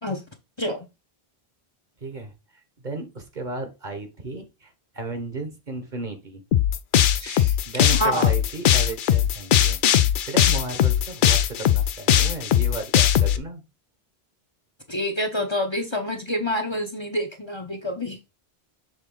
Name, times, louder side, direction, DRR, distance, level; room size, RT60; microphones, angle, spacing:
voice 1, 0.6-0.9 7.2-7.6 7.9-8.3 14.9-18.2, left 1 dB, 30° left, 0.9 m, -27 dB
voice 2, 2.0-2.3 2.8-4.7 4.9-6.4 7.7-9.8 10.3-13.6, right 3 dB, 50° right, 1.3 m, -34 dB
sound 1, 6.5-13.4, left 10 dB, 60° left, 0.6 m, -19 dB
6.6 x 3.8 x 3.8 m
omnidirectional pair, 1.0 m